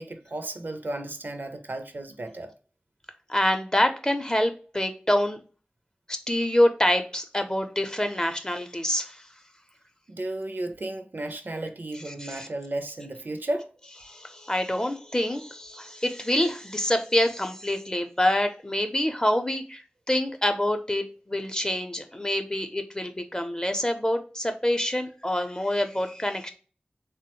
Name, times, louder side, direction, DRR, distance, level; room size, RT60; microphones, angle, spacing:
voice 1, 0.0-2.5 10.1-13.7, right 1 dB, 65° right, 0.4 m, -34 dB
voice 2, 3.3-5.4 6.3-9.2 12.3-12.5 14.1-26.5, left 1 dB, 20° left, 0.5 m, -26 dB
3.3 x 2.1 x 2.9 m
wide cardioid pair, 50°, 3 cm